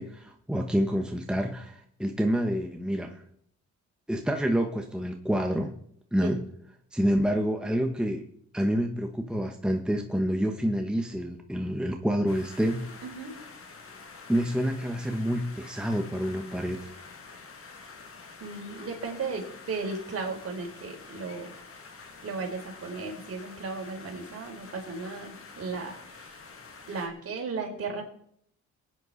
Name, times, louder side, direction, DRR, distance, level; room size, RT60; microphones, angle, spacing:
voice 1, 0.0-3.2 4.1-5.7 6.1-6.4 6.9-8.3 8.5-12.9 14.3-16.9, equal, 5° right, 3 dB, 1.3 m, -28 dB
sound 1, 12.3-27.1, left 4 dB, 50° left, 2.4 m, -47 dB
voice 2, 13.0-13.4 18.4-21.5 22.2-26.4 26.9-28.0, right 4 dB, 50° right, 2 dB, 4.1 m, -35 dB
21.5 x 9.4 x 4.2 m, 0.69 s
cardioid pair, 90°, 30 cm